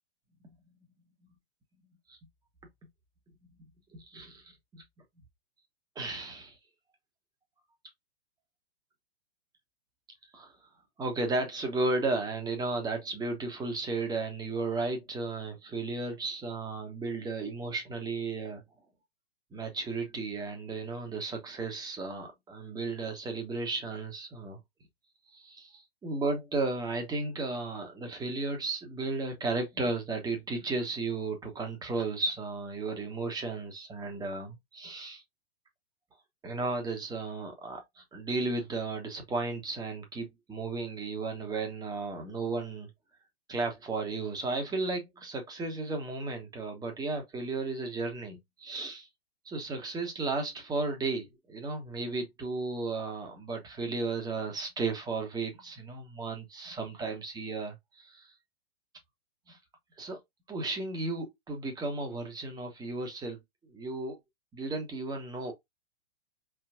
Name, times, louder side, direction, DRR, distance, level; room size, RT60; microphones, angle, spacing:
voice 1, 3.9-4.8 5.9-6.6 10.3-10.5 11.0-18.6 19.5-24.6 25.3-35.2 36.4-42.9 43.5-49.1 49.4-58.3 59.5-59.6 60.0-60.2 60.5-63.4 63.7-64.2 64.5-65.5, right 3 dB, 10° right, 1.4 m, -34 dB
4.9 x 3.6 x 2.5 m
figure-of-eight pair, 110°, 32 cm